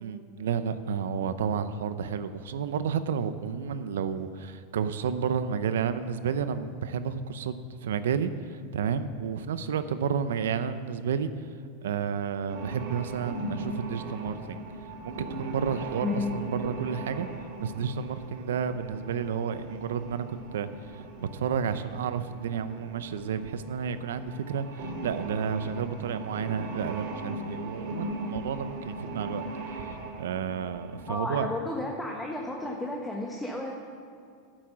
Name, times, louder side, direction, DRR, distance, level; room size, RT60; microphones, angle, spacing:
voice 1, 0.0-11.3 11.8-14.6 15.0-17.3 17.6-29.4 29.8-31.5, right 7 dB, 90° right, 12 dB, 0.7 m, -31 dB
sound 1, 12.5-31.1, right 1 dB, 65° right, 2.2 m, -39 dB
voice 2, 16.0-16.3 31.1-33.7, left 2 dB, 5° left, -1 dB, 1.2 m, -32 dB
10.5 x 9.0 x 7.4 m, 2.3 s
supercardioid pair, 130°, 0 cm